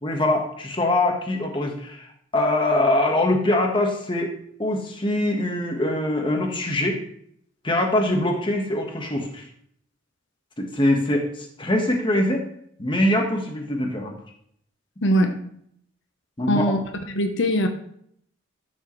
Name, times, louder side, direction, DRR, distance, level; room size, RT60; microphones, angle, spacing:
voice 1, 0.0-2.1 2.3-4.3 4.6-7.0 7.6-9.5 10.6-12.4 12.8-14.1 16.4-16.7, left 1 dB, 25° left, 2 dB, 1.4 m, -23 dB
voice 2, 15.0-15.4 16.5-16.8 17.1-17.7, equal, 65° left, 6 dB, 1.0 m, -21 dB
13.0 x 6.4 x 3.2 m, 0.67 s
head